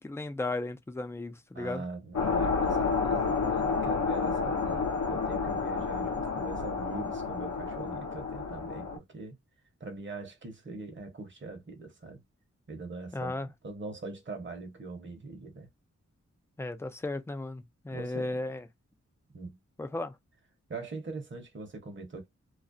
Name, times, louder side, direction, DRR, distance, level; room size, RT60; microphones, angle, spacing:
voice 1, 0.0-1.8 13.1-13.5 16.6-18.6 19.8-20.1, left 2 dB, 10° left, 0.3 m, -35 dB
voice 2, 1.5-9.4 9.8-12.2 12.7-15.7 17.9-18.4 19.3-19.6 20.7-22.3, right 3 dB, 40° right, 0.9 m, -42 dB
sound 1, 2.1-9.0, left 5 dB, 70° left, 0.7 m, -30 dB
2.4 x 2.0 x 2.5 m
wide cardioid pair, 95°, 29 cm